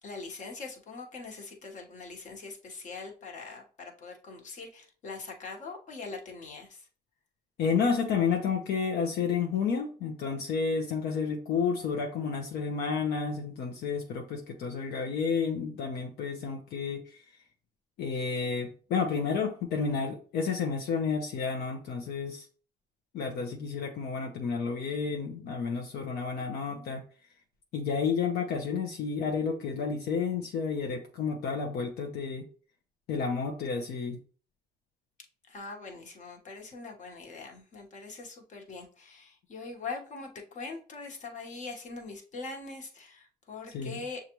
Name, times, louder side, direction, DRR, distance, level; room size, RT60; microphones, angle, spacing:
voice 1, 0.0-6.9 35.5-44.2, left 4 dB, 45° left, 1.3 m, -42 dB
voice 2, 7.6-17.2 18.0-22.5 23.1-27.0 27.7-32.5 33.1-34.2 43.7-44.0, left 5 dB, 70° left, 0.8 m, -31 dB
6.7 x 2.5 x 3.0 m
cardioid pair, 110°, 17 cm